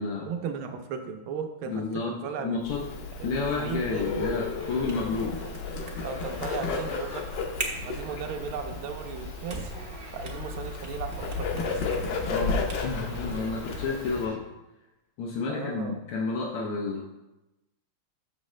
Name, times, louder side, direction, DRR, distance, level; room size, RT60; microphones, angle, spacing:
voice 1, 0.2-2.6 3.2-4.2 6.0-7.3 7.8-9.8 10.1-11.9 15.5-15.9, right 6 dB, 75° right, 6 dB, 1.5 m, -36 dB
voice 2, 1.7-2.1 2.4-2.8 3.2-5.4 12.2-14.4 15.2-17.0, left 4 dB, 85° left, -2 dB, 1.7 m, -31 dB
Bird, 2.6-14.2, left 4 dB, 65° left, 1.3 m, -33 dB
sound 1, 4.6-14.4, right 2 dB, 50° right, 0.6 m, -42 dB
7.5 x 6.3 x 3.2 m, 0.99 s
omnidirectional pair, 2.4 m